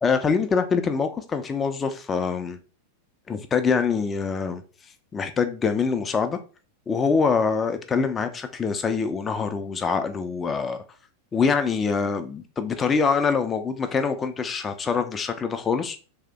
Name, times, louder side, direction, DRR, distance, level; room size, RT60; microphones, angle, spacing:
voice 1, 0.0-2.6 3.3-4.6 5.1-6.4 6.9-10.8 11.3-16.0, left 5 dB, 20° left, 0.5 m, -24 dB
3.3 x 2.8 x 3.5 m
figure-of-eight pair, 90°, 0 cm